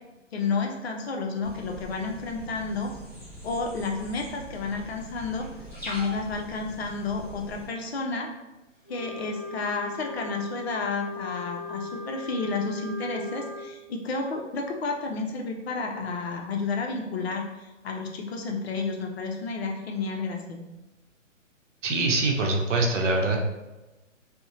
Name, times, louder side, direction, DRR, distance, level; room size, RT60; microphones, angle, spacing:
voice 1, 0.3-2.9 3.4-5.5 5.8-8.3 8.9-20.6, left 4 dB, 55° left, 1 dB, 0.5 m, -31 dB
sound 1, 1.4-7.7, equal, 5° right, 0.6 m, -42 dB
Wind instrument woodwind instrument, 8.9-13.7, left 3 dB, 30° left, 0.8 m, -38 dB
voice 2, 21.8-23.4, right 2 dB, 65° right, 1 dB, 0.7 m, -24 dB
2.5 x 2.0 x 2.8 m, 1.1 s
hypercardioid pair, 150°, 39 cm